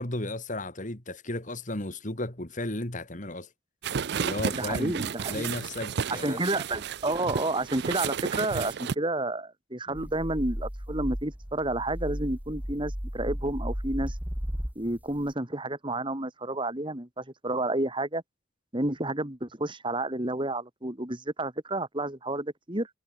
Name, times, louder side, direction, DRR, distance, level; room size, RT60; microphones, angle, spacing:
voice 1, 0.0-3.5 4.2-5.0 5.3-6.4 9.9-10.1, left 1 dB, 40° left, 2.9 m, -34 dB
sound 1, 3.8-8.9, right 6 dB, 60° right, 0.5 m, -32 dB
voice 2, 4.5-5.5 6.1-14.1 14.7-18.2 18.7-22.9, right 2 dB, 25° right, 3.0 m, -30 dB
sound 2, 9.9-15.3, equal, 10° right, 1.3 m, -35 dB
head